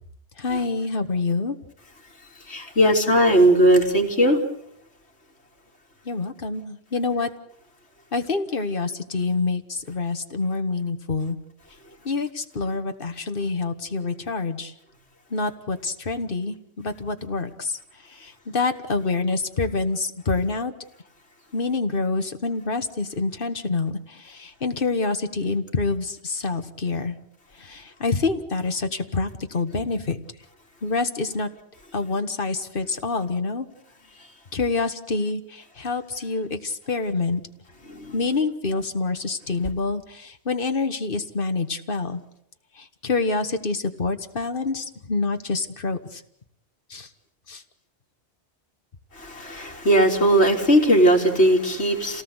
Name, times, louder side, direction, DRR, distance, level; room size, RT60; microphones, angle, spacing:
voice 1, 0.4-1.5 6.1-7.3 8.1-11.4 12.1-14.7 15.3-17.8 18.2-20.7 21.5-27.2 27.6-30.2 30.8-31.5 31.9-33.7 34.5-37.4 38.1-42.2 43.0-46.2 46.9-47.1 47.5-47.6, left 3 dB, 55° left, 7 dB, 1.9 m, -26 dB
voice 2, 2.5-4.4 37.9-38.1 49.2-52.2, right 1 dB, 75° left, 0 dB, 3.8 m, -18 dB
28.0 x 18.5 x 8.2 m, 0.72 s
omnidirectional pair, 1.1 m